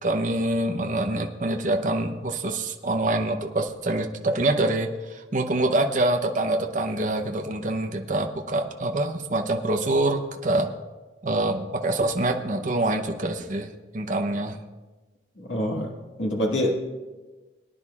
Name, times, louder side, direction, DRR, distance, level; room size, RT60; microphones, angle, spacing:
voice 1, 0.0-10.7 11.2-14.6, right 2 dB, 45° right, 4 dB, 0.8 m, -25 dB
voice 2, 15.4-15.9 16.2-16.7, left 1 dB, 80° left, -1 dB, 1.8 m, -25 dB
22.5 x 10.0 x 2.4 m, 1.2 s
head